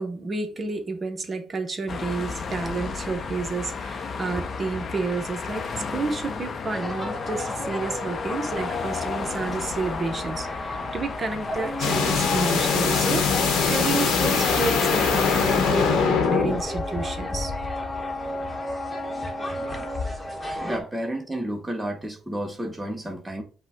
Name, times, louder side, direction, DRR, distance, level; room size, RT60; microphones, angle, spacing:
voice 1, 0.0-5.6 5.9-17.5, right 3 dB, 40° right, 0.9 m, -30 dB
sound 1, 1.9-15.6, left 5 dB, 45° left, 0.6 m, -34 dB
sound 2, 6.7-20.8, left 2 dB, 20° left, 1.1 m, -32 dB
sound 3, 11.8-16.6, left 5 dB, 85° left, 1.0 m, -22 dB
voice 2, 20.6-23.4, right 1 dB, 10° right, 0.7 m, -31 dB
5.8 x 2.2 x 4.0 m
cardioid pair, 90°, 0 cm